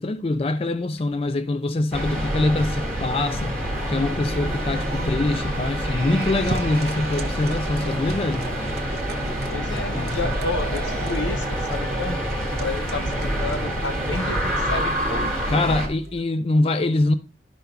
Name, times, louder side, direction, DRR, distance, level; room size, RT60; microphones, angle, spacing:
voice 1, 0.0-3.5 3.9-8.5 9.9-10.4 15.5-17.1, left 2 dB, 30° left, 0.4 m, -24 dB
sound 1, 1.9-15.9, equal, 5° left, 1.9 m, -27 dB
sound 2, 3.3-16.2, right 2 dB, 60° right, 0.7 m, -38 dB
voice 2, 9.5-12.2 12.6-15.4, left 3 dB, 85° left, 0.8 m, -31 dB
12.0 x 5.2 x 2.2 m
head